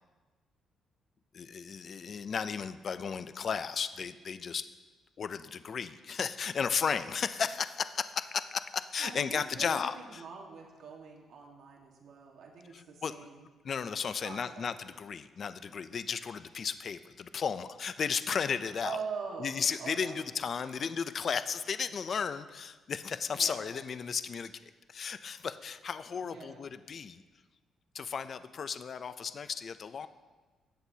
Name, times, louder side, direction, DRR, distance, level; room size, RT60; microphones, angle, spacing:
voice 1, 1.3-4.6 5.2-10.2 12.7-13.2 13.6-19.0 19.4-24.5 24.9-27.2 27.9-30.1, left 6 dB, 50° left, 12 dB, 0.5 m, -34 dB
voice 2, 9.0-13.5 14.2-14.7 18.8-20.8 23.3-23.8 26.2-26.7, right 5 dB, 65° right, 0 dB, 1.5 m, -44 dB
16.5 x 7.9 x 2.8 m, 1.3 s
cardioid pair, 90°, 0 cm